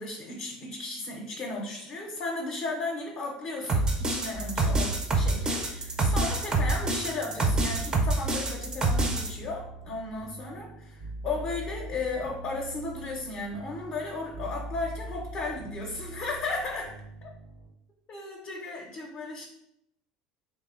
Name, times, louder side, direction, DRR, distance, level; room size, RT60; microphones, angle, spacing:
voice 1, 0.0-16.9 17.2-17.3 18.1-19.4, left 3 dB, 50° left, -1 dB, 0.5 m, -35 dB
sound 1, 3.7-9.3, right 2 dB, 20° right, 0.4 m, -26 dB
sound 2, 4.3-17.7, right 1 dB, 85° right, 0.7 m, -42 dB
2.8 x 2.0 x 2.3 m, 0.78 s
supercardioid pair, 90°, 3 cm